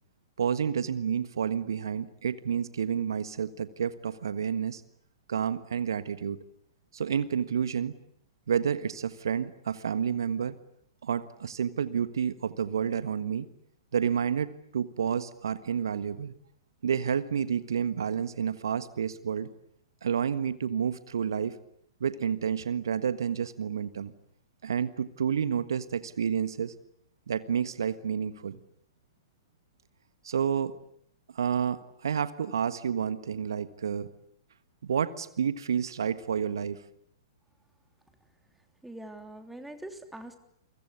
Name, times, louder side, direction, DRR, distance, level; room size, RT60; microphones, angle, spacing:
voice 1, 0.4-4.8 5.3-6.4 6.9-7.9 8.5-10.6 11.0-13.5 13.9-16.3 16.8-19.5 20.0-21.6 22.0-24.1 24.6-26.7 27.3-28.6 30.2-30.7 31.3-34.1 34.8-36.8, right 7 dB, 65° right, 13 dB, 1.5 m, -30 dB
voice 2, 38.8-40.4, right 1 dB, 5° right, 6 dB, 3.3 m, -43 dB
29.5 x 24.0 x 8.4 m, 0.72 s
figure-of-eight pair, 110°, 2 cm